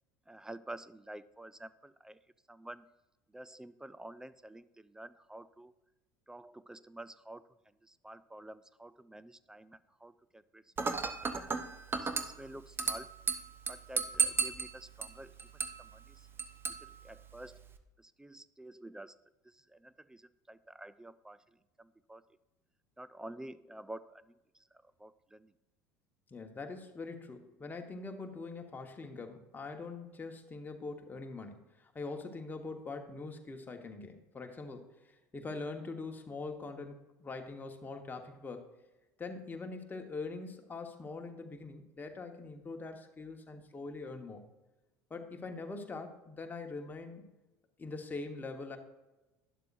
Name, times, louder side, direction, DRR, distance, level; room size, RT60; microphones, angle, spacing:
voice 1, 0.3-2.2 2.5-2.9 3.3-5.7 6.3-7.4 7.8-11.3 11.9-13.1 13.7-15.3 15.8-16.3 16.8-17.7 18.0-19.2 19.4-22.2 23.0-24.6 25.0-25.5, right 1 dB, 5° right, 16 dB, 0.4 m, -50 dB
Dishes pots and pans / Glass, 10.8-17.8, right 5 dB, 20° right, 0.9 m, -36 dB
voice 2, 26.3-38.7 39.2-44.4 45.1-47.2 47.8-48.8, left 3 dB, 20° left, 4 dB, 1.3 m, -43 dB
12.0 x 10.0 x 2.6 m, 1.1 s
figure-of-eight pair, 70°, 10 cm